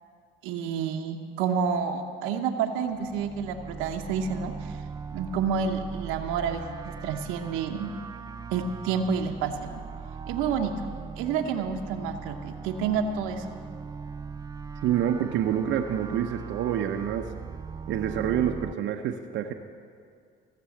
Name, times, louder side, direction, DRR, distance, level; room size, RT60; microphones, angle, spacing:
voice 1, 0.4-4.8 5.1-7.9 8.5-9.8 10.3-10.7 11.2-13.6, right 6 dB, 90° right, 5 dB, 1.0 m, -29 dB
sound 1, 2.9-18.7, right 5 dB, 20° right, 0.3 m, -40 dB
voice 2, 14.8-17.3 17.9-19.5, right 10 dB, 65° right, 4 dB, 0.8 m, -27 dB
16.0 x 6.9 x 8.4 m, 2.3 s
supercardioid pair, 90°, 21 cm